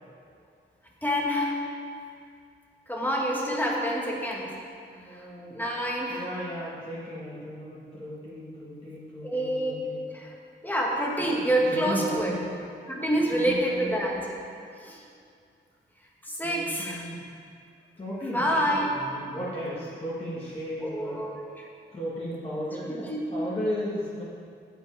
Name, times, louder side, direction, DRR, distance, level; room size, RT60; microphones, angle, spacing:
voice 1, 1.0-1.5 2.9-4.5 5.5-6.2 9.2-9.7 10.1-10.3 10.6-12.3 12.9-14.2 14.8-15.0 16.4-17.1 18.3-18.9 20.8-21.7 22.8-23.2, equal, 10° left, -2 dB, 1.5 m, -27 dB
voice 2, 4.9-5.6 6.1-10.0 11.2-12.5 13.3-13.9 16.4-17.2 18.0-21.2 21.9-24.2, equal, 30° left, -9 dB, 1.7 m, -35 dB
8.1 x 7.6 x 4.7 m, 2.4 s
wide cardioid pair, 100°, 19 cm